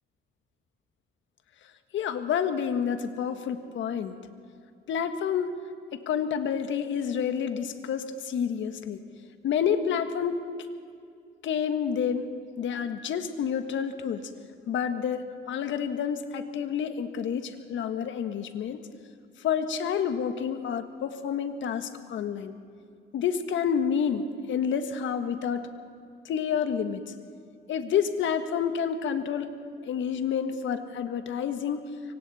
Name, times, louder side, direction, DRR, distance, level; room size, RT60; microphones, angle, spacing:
voice 1, 1.9-4.2 4.9-5.6 5.9-9.0 9.4-10.5 11.4-14.3 14.7-18.8 19.4-22.5 23.1-25.7 26.2-27.1 27.7-29.5 29.8-31.9, left 7 dB, 75° left, 9 dB, 1.5 m, -29 dB
25.5 x 24.0 x 4.3 m, 2.3 s
cardioid pair, 90°, 20 cm